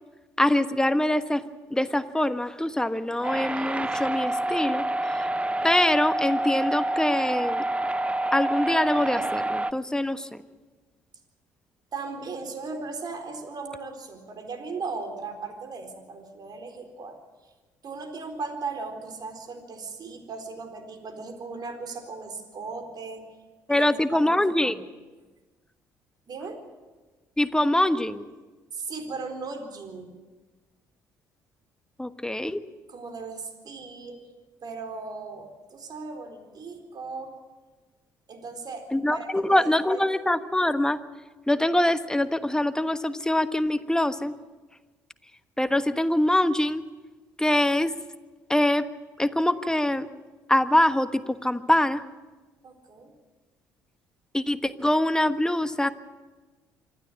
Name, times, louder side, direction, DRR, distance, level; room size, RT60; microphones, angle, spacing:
voice 1, 0.4-1.4 1.7-4.8 5.6-7.6 8.3-10.3 23.7-24.8 27.4-28.3 32.0-32.6 38.9-41.0 41.5-44.3 45.6-46.8 47.4-47.9 48.5-48.9 49.2-50.1 50.5-52.0 54.3-55.9, left 1 dB, 5° left, 11 dB, 1.3 m, -24 dB
sound 1, 3.2-9.7, right 1 dB, 15° right, 0.6 m, -27 dB
voice 2, 11.9-17.2 17.8-23.2 23.7-24.8 26.3-26.6 28.7-30.1 32.9-34.2 34.6-37.3 38.3-40.0 52.6-53.1, right 4 dB, 50° right, 5 dB, 4.1 m, -37 dB
26.0 x 12.5 x 8.6 m, 1.3 s
hypercardioid pair, 50°, 9 cm